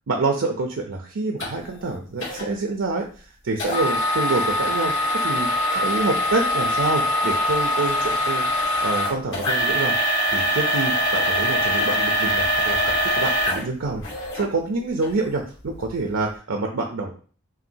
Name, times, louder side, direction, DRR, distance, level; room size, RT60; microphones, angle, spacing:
voice 1, 0.1-5.5 5.7-8.5 8.8-9.9 10.3-17.2, right 3 dB, 70° right, 2 dB, 0.6 m, -27 dB
sound 1, 1.4-1.5 2.2-2.4 3.6-14.4 15.0-15.1 15.7-15.8, equal, 65° left, 1.9 m, -23 dB
5.7 x 2.6 x 2.7 m, 0.42 s
head